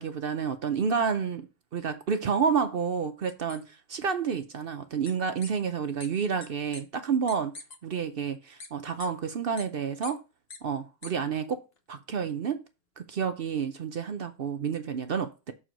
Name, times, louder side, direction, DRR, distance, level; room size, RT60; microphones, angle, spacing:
voice 1, 0.0-1.5 1.7-7.5 7.8-10.2 10.6-11.6 11.9-12.6 13.0-15.5, right 6 dB, 60° right, 0.6 m, -29 dB
sound 1, 3.3-3.6 5.1-5.2 5.4-5.5 6.0-6.1 6.4-6.5 6.7-6.8 7.3-7.8 8.6-8.7 9.0-9.1 9.6-9.7 10.0-10.1 10.5-10.6 11.0-11.1, left 3 dB, 45° left, 1.1 m, -42 dB
6.7 x 4.6 x 5.1 m
omnidirectional pair, 1.7 m